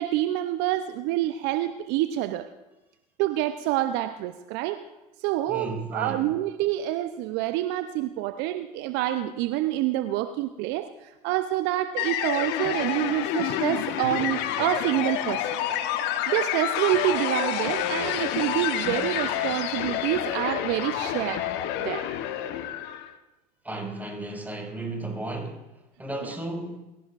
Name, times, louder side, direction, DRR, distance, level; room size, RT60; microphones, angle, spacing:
voice 1, 0.0-2.5 3.2-4.8 5.2-10.9 11.2-15.5 16.3-21.4 21.8-22.0 26.2-26.3, right 14 dB, 55° right, 10 dB, 0.8 m, -27 dB
voice 2, 5.5-6.3 15.8-16.1 23.6-25.6 26.0-26.8, right 2 dB, 10° right, 0 dB, 5.8 m, -34 dB
sound 1, 12.0-23.1, left 11 dB, 55° left, 1.2 m, -28 dB
22.5 x 16.5 x 2.6 m, 1.0 s
hypercardioid pair, 80°, 21 cm